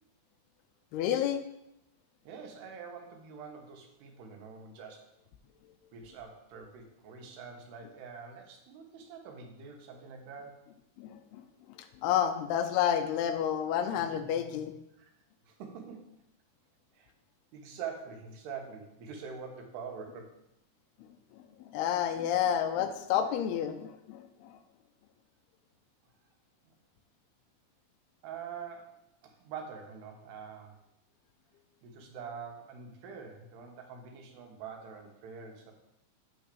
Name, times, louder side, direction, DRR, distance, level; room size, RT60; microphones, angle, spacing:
voice 1, 0.9-1.4 11.0-11.4 11.7-14.7 21.3-24.6, left 9 dB, 80° left, 8 dB, 2.6 m, -30 dB
voice 2, 2.2-5.1 5.9-10.6 15.0-15.1 15.5-16.1 16.9-17.1 17.5-20.4 26.6-26.7 28.2-30.8 31.8-35.7, right 6 dB, 80° right, 3 dB, 3.2 m, -45 dB
9.0 x 3.5 x 6.7 m, 0.81 s
omnidirectional pair, 4.7 m